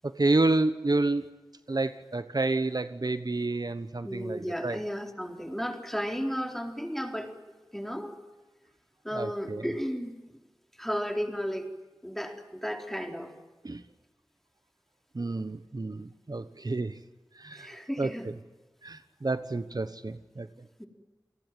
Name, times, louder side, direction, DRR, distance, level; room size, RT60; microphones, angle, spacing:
voice 1, 0.0-1.3 1.7-4.8 9.1-9.6 13.6-13.8 15.1-17.0 17.3-17.7 18.0-18.3 18.8-20.5, right 2 dB, 60° right, 11 dB, 1.1 m, -29 dB
voice 2, 4.0-7.3 7.7-8.2 9.0-10.2 10.8-11.7 12.0-13.3 17.5-18.3 20.8-20.9, equal, 5° left, 4 dB, 4.1 m, -34 dB
29.0 x 19.0 x 9.1 m, 1.2 s
wide cardioid pair, 50°, 8 cm